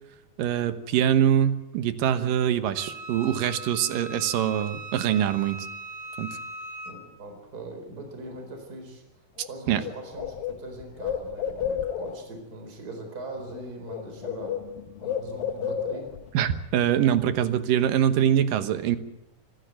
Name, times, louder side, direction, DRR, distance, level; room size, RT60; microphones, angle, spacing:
voice 1, 0.4-5.6 6.2-6.4 9.7-9.8 16.3-19.0, right 10 dB, 75° right, 11 dB, 2.7 m, -24 dB
Wind instrument woodwind instrument, 2.7-7.0, right 2 dB, 50° right, 3.3 m, -39 dB
voice 2, 6.8-14.6 15.0-16.1, right 2 dB, 25° right, 4 dB, 4.6 m, -41 dB
Bird, 9.4-9.5 9.8-12.3 13.4-13.6 13.9-16.3, left 8 dB, 85° left, 2.8 m, -32 dB
25.5 x 14.0 x 9.2 m, 0.91 s
omnidirectional pair, 4.1 m